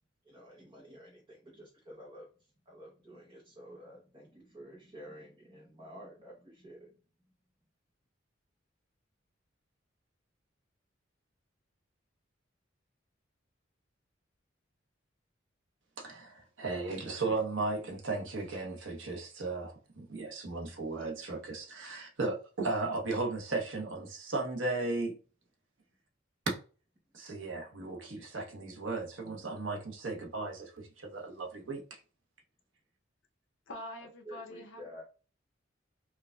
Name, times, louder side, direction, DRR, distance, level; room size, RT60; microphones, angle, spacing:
voice 1, 0.2-7.0 34.2-35.0, equal, 25° right, 0.8 m, -51 dB
voice 2, 16.0-25.2 26.5-26.6 27.1-32.0, right 3 dB, 80° right, 1.0 m, -36 dB
voice 3, 33.7-35.0, left 1 dB, 80° left, 0.7 m, -45 dB
4.7 x 2.4 x 2.2 m
head